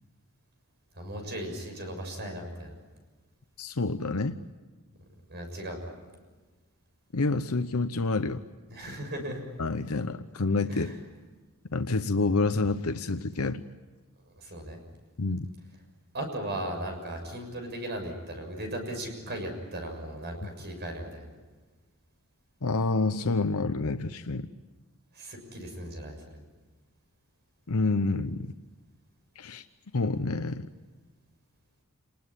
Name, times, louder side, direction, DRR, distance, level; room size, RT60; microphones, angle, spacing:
voice 1, 0.9-2.7 5.3-5.8 8.7-9.4 10.7-11.0 14.4-14.8 16.1-21.3 25.1-26.2, right 1 dB, 50° right, 4 dB, 6.8 m, -37 dB
voice 2, 3.6-4.4 7.1-8.4 9.6-11.0 11.7-13.6 15.2-15.5 20.4-20.5 22.6-24.5 27.7-28.5 29.4-29.6 29.9-30.7, left 3 dB, 70° left, 9 dB, 0.9 m, -28 dB
29.0 x 20.5 x 9.9 m, 1.3 s
head